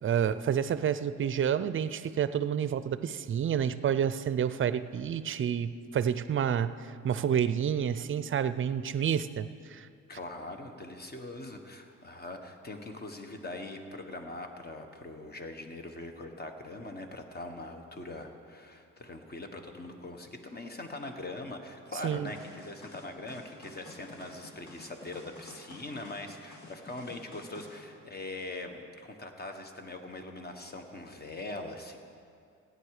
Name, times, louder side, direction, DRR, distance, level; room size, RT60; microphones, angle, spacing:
voice 1, 0.0-6.7 7.0-9.9 22.0-22.3, right 8 dB, 40° right, 13 dB, 0.5 m, -29 dB
voice 2, 10.1-32.0, left 2 dB, 30° left, 5 dB, 1.4 m, -42 dB
sound 1, 22.2-27.8, left 2 dB, 70° left, 2.4 m, -51 dB
16.5 x 9.6 x 4.9 m, 2.4 s
cardioid pair, 90°, 30 cm